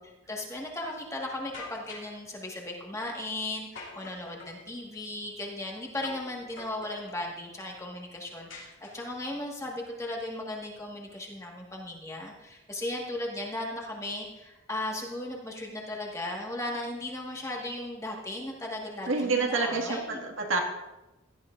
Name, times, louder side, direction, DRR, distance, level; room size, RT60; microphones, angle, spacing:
voice 1, 0.3-20.2, left 1 dB, 15° left, -1 dB, 1.6 m, -36 dB
sound 1, 1.5-2.2 3.8-4.6 6.0-6.3 6.6-7.2 8.5-9.3, left 3 dB, 70° left, 2.9 m, -45 dB
voice 2, 19.1-20.6, right 3 dB, 80° right, 1 dB, 2.0 m, -28 dB
17.0 x 11.5 x 2.6 m, 1.0 s
head